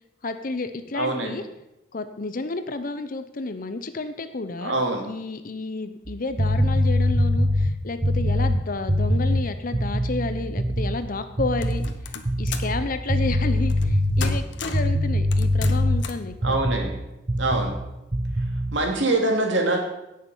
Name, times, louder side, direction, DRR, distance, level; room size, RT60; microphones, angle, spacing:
voice 1, 0.2-1.4 1.9-4.7 5.0-16.6, left 3 dB, 45° left, 10 dB, 0.7 m, -31 dB
voice 2, 0.9-1.4 4.6-5.1 16.4-17.0 17.4-17.8 18.7-19.8, right 2 dB, 75° right, 1 dB, 2.6 m, -24 dB
sound 1, 6.1-11.0 11.3-12.0 12.2-16.9 17.3-17.8 18.1-18.8, left 1 dB, 30° right, 0.9 m, -23 dB
sound 2, 11.6-12.8 13.7-13.9 14.2-14.9 15.3-16.3, left 5 dB, 70° left, 1.1 m, -35 dB
17.0 x 6.6 x 5.5 m, 0.90 s
head